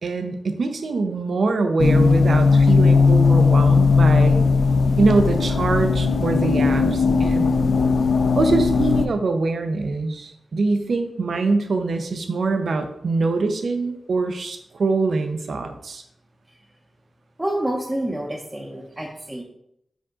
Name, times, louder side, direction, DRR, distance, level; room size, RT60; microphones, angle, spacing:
voice 1, 0.0-4.4 5.0-7.5 8.4-16.0, right 3 dB, 65° right, 6 dB, 0.6 m, -23 dB
sound 1, 1.8-9.1, left 4 dB, 80° left, 0.4 m, -17 dB
voice 2, 17.4-19.4, right 1 dB, 10° right, -2 dB, 0.7 m, -28 dB
5.1 x 5.0 x 3.7 m, 0.76 s
wide cardioid pair, 125°, 0 cm